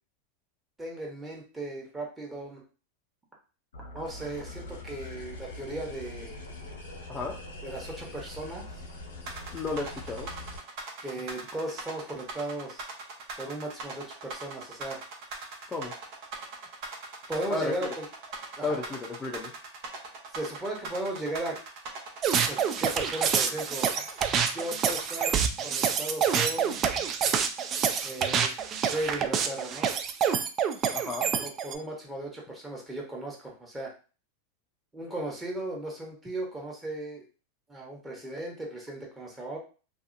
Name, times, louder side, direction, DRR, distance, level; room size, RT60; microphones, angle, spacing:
voice 1, 0.8-2.6 3.9-6.4 7.6-8.8 11.0-12.8 13.4-15.0 17.3-18.0 18.5-18.8 20.3-21.6 22.5-23.9 24.5-26.8 28.0-28.5 28.9-29.9 31.4-33.9 34.9-37.2 37.7-39.6, right 1 dB, 15° right, -1 dB, 1.0 m, -36 dB
sound 1, 3.7-10.6, left 2 dB, 85° left, 0.8 m, -43 dB
sound 2, 9.3-25.3, right 3 dB, 55° right, 0.8 m, -40 dB
voice 2, 9.5-10.3 15.7-15.9 17.5-17.7 18.6-19.5 30.9-31.3, left 3 dB, 20° left, 0 dB, 0.5 m, -33 dB
sound 3, 22.2-31.7, right 7 dB, 35° right, 0.3 m, -27 dB
2.7 x 2.4 x 2.5 m, 0.35 s
hypercardioid pair, 110°, 0 cm